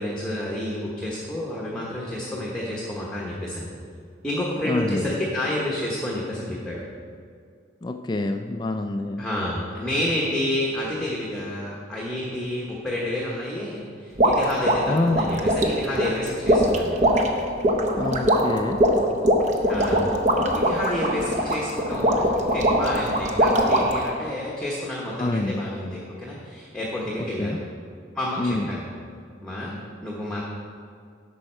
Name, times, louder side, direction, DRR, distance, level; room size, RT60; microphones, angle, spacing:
voice 1, 0.0-3.7 4.2-6.8 9.2-17.1 19.6-27.6 28.1-28.8 29.4-30.5, left 1 dB, 5° left, -4 dB, 1.0 m, -30 dB
voice 2, 4.7-5.2 7.8-9.2 14.9-15.2 18.0-18.8 25.2-25.7 27.4-27.6 28.4-28.7, left 2 dB, 20° left, 6 dB, 0.3 m, -26 dB
sound 1, 14.2-24.1, equal, 40° right, 0.8 m, -21 dB
11.0 x 6.2 x 4.4 m, 2.2 s
head